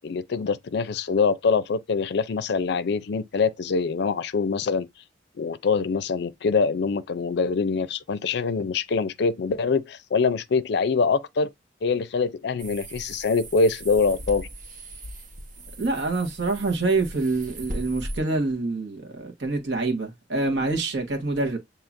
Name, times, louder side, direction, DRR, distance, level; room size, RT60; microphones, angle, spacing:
voice 1, 0.0-4.9 5.4-11.5 11.8-14.5, left 4 dB, 65° left, 0.4 m, -24 dB
sound 1, 12.6-18.2, right 1 dB, 50° right, 1.2 m, -38 dB
voice 2, 15.8-21.6, right 3 dB, 75° right, 1.3 m, -26 dB
7.1 x 2.8 x 2.5 m
head